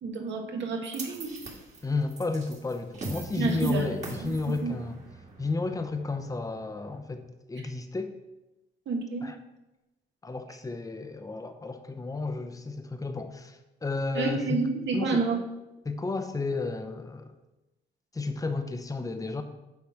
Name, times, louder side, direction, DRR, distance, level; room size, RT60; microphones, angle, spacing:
voice 1, 0.0-1.3 3.4-3.9 4.2-4.3 4.6-4.7 8.9-9.2 14.1-15.4, right 4 dB, 65° right, 1 dB, 1.6 m, -29 dB
sound 1, 0.9-7.2, right 3 dB, 35° right, 1.9 m, -42 dB
voice 2, 1.8-5.0 5.4-8.1 9.2-9.4 10.2-14.6 14.9-15.3 15.8-17.3 18.1-19.4, left 3 dB, 15° left, 7 dB, 0.8 m, -32 dB
7.0 x 4.3 x 6.4 m, 0.99 s
cardioid pair, 90°, 20 cm